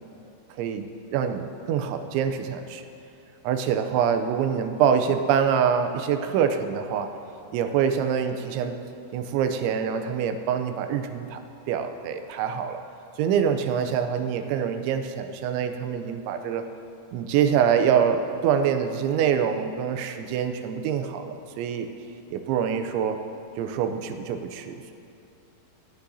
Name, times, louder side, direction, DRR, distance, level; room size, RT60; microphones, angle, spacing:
voice 1, 1.1-2.8 3.4-7.1 7.5-8.8 9.1-11.4 11.7-12.8 13.2-16.6 17.1-21.9 22.3-23.2 23.6-24.9, right 7 dB, 85° right, 7 dB, 2.9 m, -25 dB
18.0 x 9.8 x 2.7 m, 2.8 s
omnidirectional pair, 5.4 m